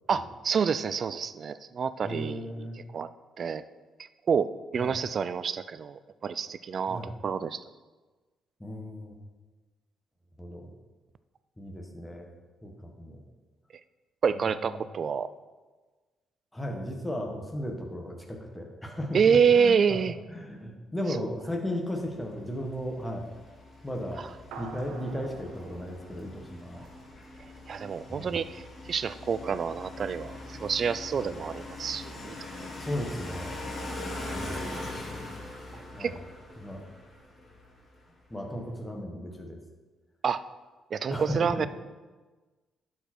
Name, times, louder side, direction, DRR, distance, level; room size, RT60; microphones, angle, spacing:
voice 1, 0.1-2.5 2.9-3.1 3.4-3.6 4.3-7.6 14.2-15.3 19.1-20.1 27.7-28.6 28.9-32.3 32.6-32.7 36.0-36.1 40.2-40.4 40.9-41.7, right 6 dB, 50° right, 14 dB, 0.4 m, -27 dB
voice 2, 2.0-2.8 4.8-5.0 6.9-7.1 8.6-9.2 10.4-10.7 11.6-12.3 12.6-13.2 14.3-14.8 16.5-23.2 23.8-24.3 24.6-26.8 28.1-28.4 31.2-31.3 32.8-33.6 34.3-34.7 35.7-36.2 36.6-36.8 38.3-39.6 41.1-41.7, equal, 10° left, 1 dB, 1.5 m, -36 dB
sound 1, 21.9-38.1, left 2 dB, 40° left, 2.6 m, -42 dB
sound 2, 24.5-27.2, right 5 dB, 85° right, 0.8 m, -47 dB
11.5 x 5.0 x 4.5 m, 1.3 s
cardioid pair, 90°, 0 cm